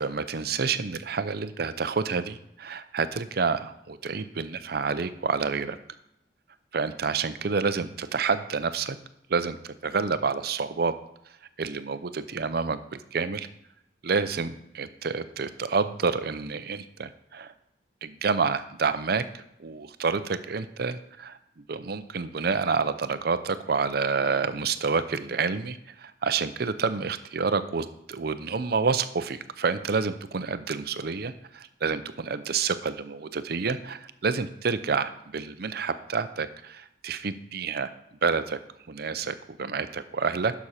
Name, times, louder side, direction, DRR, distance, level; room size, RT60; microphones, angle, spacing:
voice 1, 0.0-5.8 6.7-9.0 9.3-10.9 11.6-13.5 14.0-17.5 18.0-21.4 21.7-37.9 38.2-38.6 38.9-40.5, right 5 dB, 55° right, 12 dB, 0.6 m, -28 dB
11.5 x 6.1 x 4.2 m, 0.82 s
head